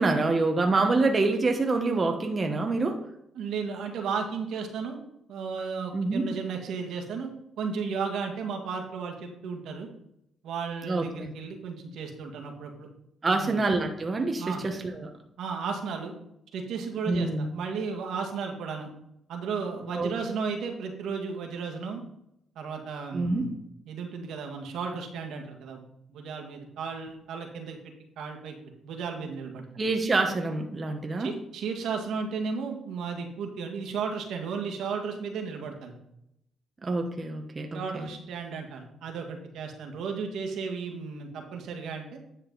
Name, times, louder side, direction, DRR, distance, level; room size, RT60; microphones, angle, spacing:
voice 1, 0.0-3.0 5.9-6.3 10.8-11.3 13.2-15.1 17.1-17.5 19.9-20.1 23.1-23.5 29.8-31.3 36.8-38.1, right 3 dB, 30° right, 3 dB, 1.1 m, -26 dB
voice 2, 3.4-5.0 5.3-7.3 7.6-9.9 10.4-12.9 13.3-13.6 14.4-14.6 15.4-16.1 16.5-18.9 19.3-22.0 22.6-23.5 23.9-25.8 26.1-27.8 28.2-28.6 28.8-29.6 31.2-35.9 37.7-42.2, right 5 dB, 80° right, 3 dB, 1.8 m, -34 dB
10.0 x 6.5 x 4.0 m, 0.78 s
cardioid pair, 90°, 0 cm